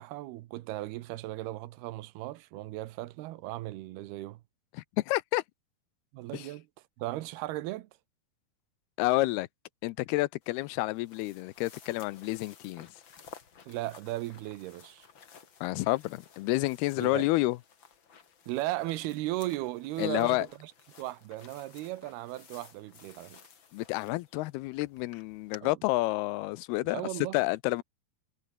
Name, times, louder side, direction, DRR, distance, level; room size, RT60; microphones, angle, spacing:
voice 1, 0.0-4.4 6.1-6.7 7.0-7.9 13.7-15.1 17.0-17.3 18.5-20.7 21.0-23.4 25.6-25.8 26.9-27.4, right 17 dB, 90° right, 3.0 m, -36 dB
voice 2, 4.7-5.4 6.3-6.5 9.0-9.5 9.8-12.9 15.6-17.6 20.0-20.5 23.7-27.0 27.3-27.8, left 20 dB, 90° left, 2.7 m, -29 dB
sound 1, 10.4-25.6, left 6 dB, 40° left, 2.2 m, -55 dB
omnidirectional pair, 4.4 m